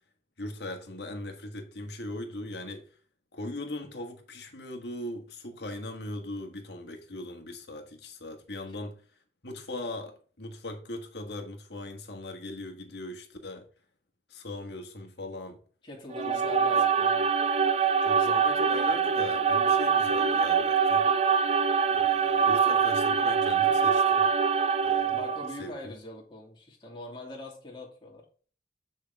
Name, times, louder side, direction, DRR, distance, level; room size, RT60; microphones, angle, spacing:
voice 1, 0.4-2.8 3.3-9.0 9.4-13.7 14.3-15.6 16.2-16.5 18.0-21.1 21.9-24.3 24.8-25.2 25.6-25.9, left 1 dB, 70° left, 1.6 m, -39 dB
voice 2, 15.8-17.3 25.1-28.2, left 2 dB, 25° left, 2.6 m, -42 dB
sound 1, 16.1-25.6, right 6 dB, 35° right, 0.3 m, -24 dB
7.6 x 6.5 x 3.5 m
head